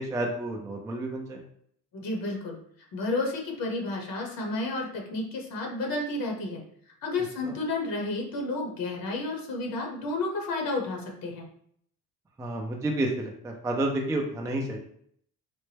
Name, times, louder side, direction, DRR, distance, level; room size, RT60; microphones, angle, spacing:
voice 1, 0.0-1.4 12.4-14.8, right 1 dB, 10° right, 1 dB, 0.4 m, -30 dB
voice 2, 1.9-2.6 2.9-6.6 7.0-11.4, left 2 dB, 60° left, 1 dB, 0.9 m, -31 dB
4.2 x 2.1 x 3.2 m, 0.66 s
cardioid pair, 140°, 39 cm